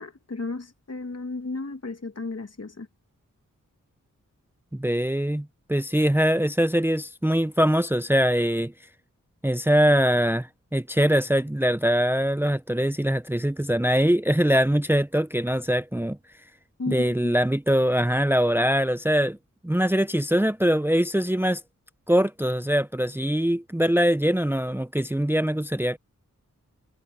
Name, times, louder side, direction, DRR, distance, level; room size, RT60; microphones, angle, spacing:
voice 1, 0.0-2.9 16.8-17.4, left 3 dB, 50° left, 2.2 m, -34 dB
voice 2, 4.7-8.7 9.4-16.2 16.9-19.4 19.6-21.6 22.1-26.0, equal, 5° right, 0.8 m, -23 dB
cardioid pair, 40°, 32 cm